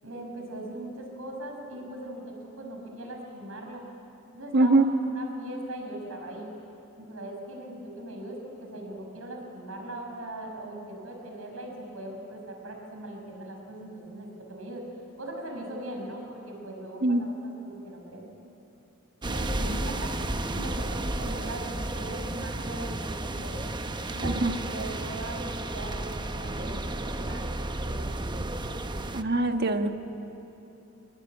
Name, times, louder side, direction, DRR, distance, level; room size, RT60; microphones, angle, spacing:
voice 1, 0.0-3.9 4.3-6.5 7.0-14.8 15.2-17.3 17.6-18.3 19.2-23.5 24.1-27.5 27.8-28.7, right 1 dB, 85° right, 1 dB, 5.7 m, -40 dB
voice 2, 4.5-4.8 17.0-17.2 24.2-24.5 29.1-29.9, right 2 dB, 50° right, 6 dB, 1.4 m, -22 dB
sound 1, 19.2-29.2, right 2 dB, 20° right, 0.9 m, -32 dB
25.5 x 22.5 x 9.9 m, 3.0 s
head